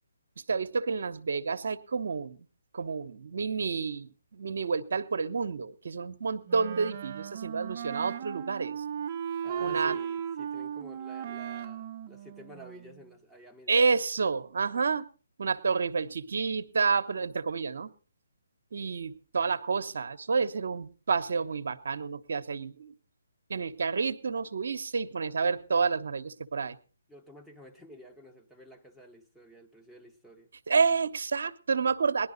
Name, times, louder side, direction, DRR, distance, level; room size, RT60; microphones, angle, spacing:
voice 1, 0.5-2.4 2.7-8.8 9.6-10.0 13.7-15.1 15.4-17.9 18.7-22.9 23.5-26.8 30.7-32.3, right 5 dB, 65° right, 1.0 m, -29 dB
Wind instrument woodwind instrument, 6.5-13.1, right 8 dB, 40° right, 0.8 m, -36 dB
voice 2, 9.4-13.8 27.1-30.5, equal, 5° left, 1.2 m, -51 dB
19.0 x 11.5 x 4.0 m
figure-of-eight pair, 145°, 0 cm